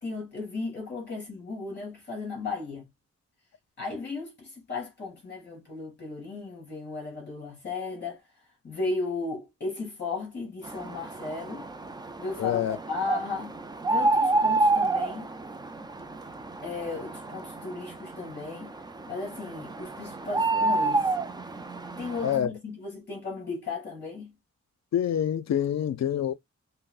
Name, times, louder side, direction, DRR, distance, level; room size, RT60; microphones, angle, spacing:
voice 1, 0.0-2.8 3.8-8.2 8.6-11.6 12.2-13.6 13.9-15.3 16.6-18.8 19.1-21.1 22.0-24.3, left 3 dB, 35° left, 2.7 m, -35 dB
sound 1, 10.6-22.4, right 2 dB, 15° right, 0.3 m, -29 dB
voice 2, 12.4-12.8 22.2-22.5 24.9-26.3, left 9 dB, 65° left, 0.5 m, -26 dB
5.5 x 2.0 x 2.4 m
wide cardioid pair, 170°, 30 cm